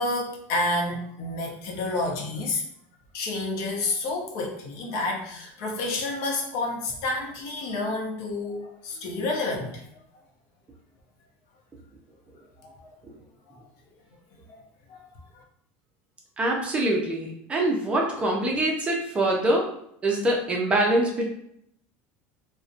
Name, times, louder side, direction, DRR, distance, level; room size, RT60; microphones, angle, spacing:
voice 1, 0.0-2.6 3.1-9.8 12.6-13.0 14.9-15.1, left 2 dB, 60° left, 0 dB, 0.6 m, -29 dB
voice 2, 16.4-19.8 20.0-21.3, right 1 dB, 20° right, -1 dB, 0.5 m, -24 dB
2.5 x 2.1 x 2.4 m, 0.69 s
cardioid pair, 150°, 6 cm